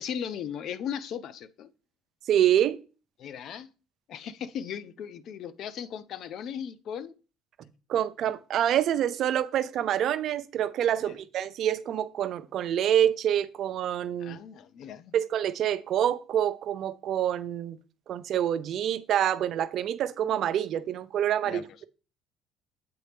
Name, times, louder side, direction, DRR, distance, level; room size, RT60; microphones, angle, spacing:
voice 1, 0.0-1.7 3.2-3.7 4.1-7.1 11.0-11.2 14.2-15.1 21.5-21.6, left 8 dB, 60° left, 0.5 m, -37 dB
voice 2, 2.3-2.8 7.9-14.4 15.1-17.8 18.1-21.6, right 10 dB, 60° right, 0.5 m, -26 dB
7.8 x 4.0 x 3.4 m
supercardioid pair, 95°, 0 cm